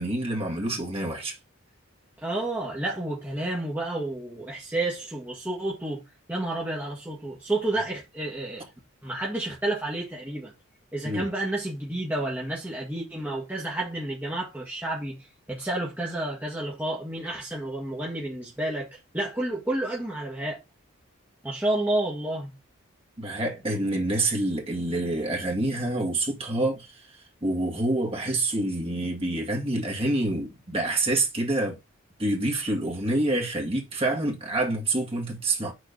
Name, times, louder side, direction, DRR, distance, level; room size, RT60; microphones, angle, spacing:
voice 1, 0.0-1.4 11.0-11.3 23.2-27.0 27.4-31.8 32.2-35.7, right 2 dB, 25° right, 2.1 m, -27 dB
voice 2, 2.2-6.0 6.3-8.6 9.0-10.5 10.9-20.6 21.4-22.5, right 1 dB, 10° right, 1.6 m, -30 dB
6.5 x 4.1 x 5.2 m
head